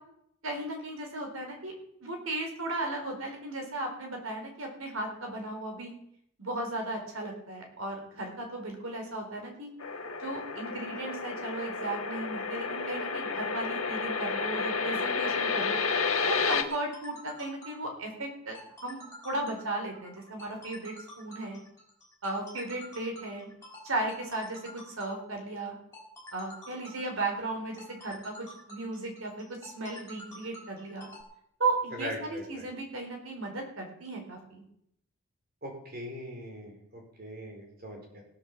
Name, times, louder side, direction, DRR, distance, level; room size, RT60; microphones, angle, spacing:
voice 1, 0.4-1.7 2.0-5.9 6.4-9.7 10.2-15.8 16.3-18.6 18.8-21.6 22.2-23.5 23.8-25.7 26.3-31.1 31.6-34.6, right 2 dB, 75° right, 2 dB, 4.3 m, -35 dB
sound 1, 9.8-16.6, left 4 dB, 80° left, 1.5 m, -31 dB
sound 2, 16.7-31.2, equal, 10° left, 4.5 m, -49 dB
voice 2, 32.0-32.7 35.6-38.2, equal, 45° right, 1 dB, 4.6 m, -41 dB
17.0 x 8.1 x 7.5 m, 0.73 s
head